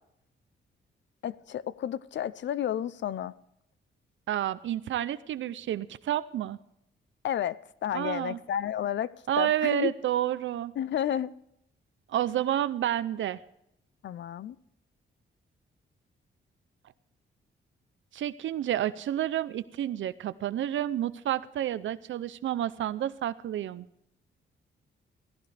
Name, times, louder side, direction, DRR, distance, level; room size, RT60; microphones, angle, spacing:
voice 1, 1.2-3.3 7.2-9.1 9.4-9.9 10.8-11.3 14.0-14.6, left 10 dB, 65° left, 0.6 m, -31 dB
voice 2, 4.3-6.6 7.9-8.4 9.3-10.7 12.1-13.4 18.1-23.9, right 11 dB, 75° right, 0.6 m, -30 dB
15.5 x 15.5 x 3.3 m
cardioid pair, 125°, 20 cm